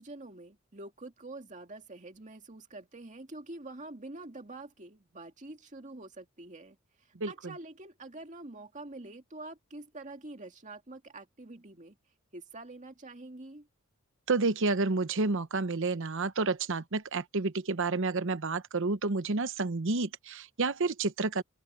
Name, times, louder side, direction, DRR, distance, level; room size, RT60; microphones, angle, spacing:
voice 1, 0.0-12.0 12.3-13.7, right 2 dB, 35° right, 2.2 m, -46 dB
voice 2, 7.1-7.5 14.3-21.4, right 3 dB, 60° right, 0.9 m, -30 dB
open air
head